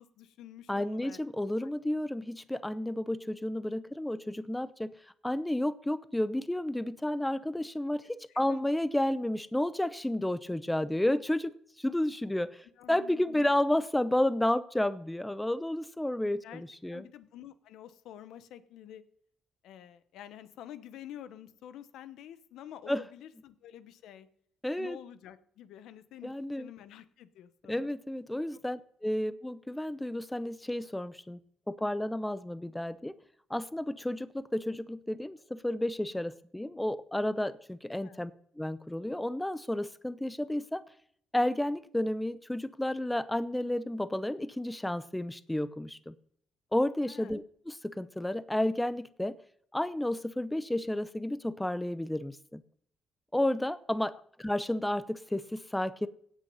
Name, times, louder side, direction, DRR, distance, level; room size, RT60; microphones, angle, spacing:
voice 1, 0.0-1.2 1.6-1.7 8.3-8.7 12.8-13.5 16.2-16.6 16.9-19.0 19.6-24.3 24.8-27.9 38.0-38.2 47.1-47.3, left 11 dB, 85° left, 13 dB, 0.9 m, -49 dB
voice 2, 0.7-4.9 5.2-11.5 11.8-17.0 22.9-23.0 24.6-25.0 26.2-26.7 27.7-31.4 31.7-33.1 33.5-40.8 41.3-46.1 46.7-49.4 49.7-52.6 53.3-56.1, left 1 dB, 10° left, 15 dB, 0.6 m, -31 dB
17.0 x 6.4 x 5.5 m, 0.63 s
cardioid pair, 90°, 0 cm